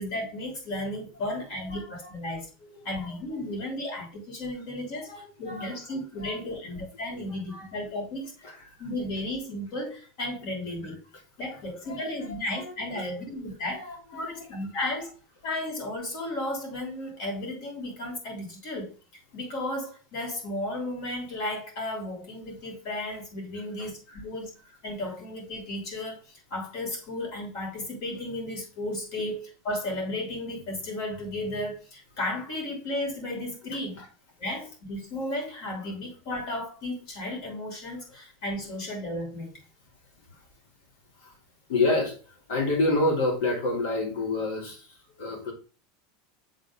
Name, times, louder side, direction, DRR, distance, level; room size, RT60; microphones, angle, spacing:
voice 1, 0.0-2.5 2.8-8.3 8.8-11.0 11.4-13.8 14.1-15.1 15.4-18.9 19.3-24.5 24.8-34.0 34.4-39.6, left 1 dB, 60° left, 3.1 m, -34 dB
voice 2, 1.7-2.1 2.6-3.0 3.4-3.5 5.0-5.8 6.2-6.3 7.5-7.7 8.4-8.6 11.8-14.5 23.8-24.2 33.9-34.1 41.2-41.3 41.7-45.5, left 2 dB, 85° left, 3.0 m, -30 dB
7.1 x 4.0 x 3.8 m
supercardioid pair, 140°, 0 cm